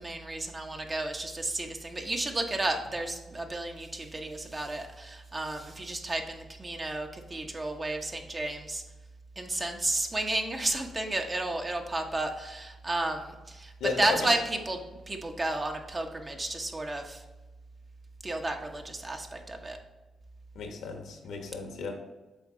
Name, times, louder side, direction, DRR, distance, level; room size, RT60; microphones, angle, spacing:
voice 1, 0.0-8.8 9.4-17.2 18.2-19.8, right 2 dB, 35° right, 4 dB, 1.0 m, -32 dB
voice 2, 13.8-14.2 20.5-21.9, left 5 dB, 80° left, 3 dB, 1.1 m, -34 dB
7.1 x 4.0 x 3.7 m, 1.1 s
supercardioid pair, 50°, 0 cm